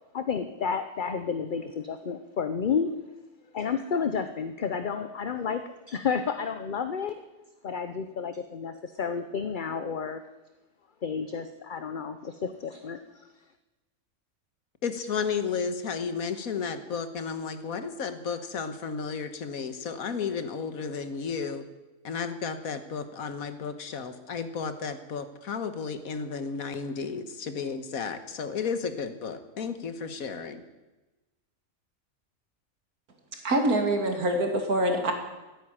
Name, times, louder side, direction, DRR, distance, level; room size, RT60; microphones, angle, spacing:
voice 1, 0.1-2.9 3.5-5.6 5.9-7.2 7.6-10.2 11.0-13.3, left 6 dB, 45° left, 10 dB, 0.7 m, -31 dB
voice 2, 14.8-21.7 22.0-30.6, left 5 dB, 70° left, 10 dB, 1.7 m, -33 dB
voice 3, 33.3-35.1, right 1 dB, 75° right, 4 dB, 2.8 m, -25 dB
13.5 x 10.0 x 9.9 m, 1.1 s
omnidirectional pair, 1.6 m